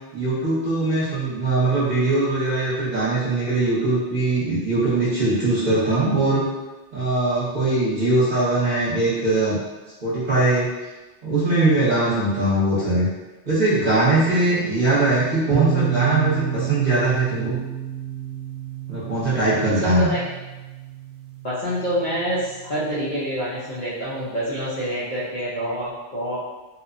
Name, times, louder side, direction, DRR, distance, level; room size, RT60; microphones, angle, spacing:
voice 1, 0.1-6.4 6.9-9.6 10.0-10.7 11.2-13.1 13.5-17.5 18.9-20.1, right 2 dB, 40° right, -9 dB, 0.8 m, -21 dB
sound 1, 15.5-23.2, right 9 dB, 75° right, 0.9 m, -30 dB
voice 2, 19.8-20.2 21.4-26.4, equal, 50° left, -9 dB, 0.6 m, -26 dB
2.8 x 2.1 x 2.5 m, 1.1 s
omnidirectional pair, 1.3 m